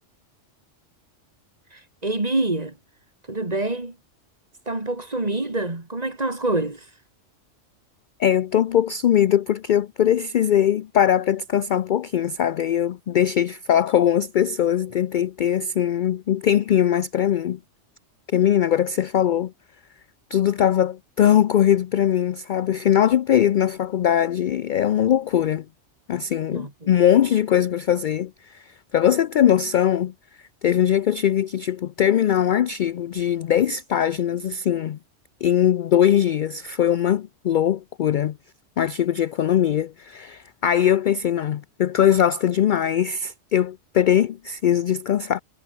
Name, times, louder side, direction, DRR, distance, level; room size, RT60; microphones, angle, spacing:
voice 1, 1.7-2.8 3.3-4.0 4.7-6.9 26.5-26.7, right 2 dB, 35° right, 2.7 m, -26 dB
voice 2, 8.2-17.6 18.3-19.5 20.3-25.6 26.1-28.6 28.9-30.1 30.6-35.0 35.4-38.4 38.8-45.4, left 10 dB, 60° left, 0.5 m, -21 dB
omnidirectional pair, 1.2 m